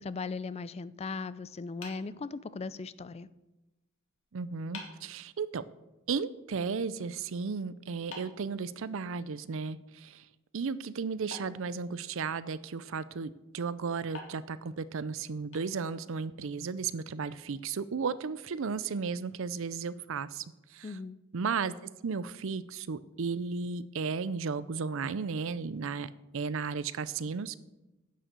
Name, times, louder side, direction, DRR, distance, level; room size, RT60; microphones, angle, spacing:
voice 1, 0.0-3.3 20.8-21.2, left 4 dB, 30° left, 0.4 m, -38 dB
sound 1, 1.8-2.9 4.1-4.2 4.7-5.1 8.1-9.3 11.3-12.4 14.1-16.2, left 3 dB, 65° left, 2.4 m, -49 dB
voice 2, 4.3-5.6 6.1-10.2 10.5-20.4 20.7-20.9 21.3-21.7 22.0-27.6, right 5 dB, 65° right, 0.5 m, -34 dB
10.5 x 6.4 x 6.7 m
head